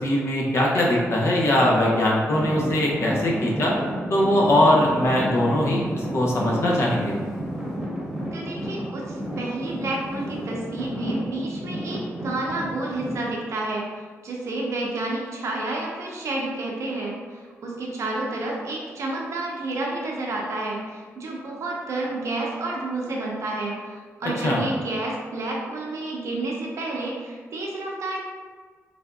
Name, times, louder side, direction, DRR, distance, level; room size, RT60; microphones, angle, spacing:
voice 1, 0.0-3.7 4.1-7.2 24.4-24.6, left 1 dB, 55° left, -3 dB, 0.7 m, -21 dB
Traffic noise roadway noise / Engine, 2.3-13.2, equal, 5° right, 1.0 m, -31 dB
voice 2, 8.3-13.8 14.2-28.2, right 2 dB, 70° right, -2 dB, 0.6 m, -30 dB
3.3 x 2.5 x 2.2 m, 1.5 s
cardioid pair, 95°, 5 cm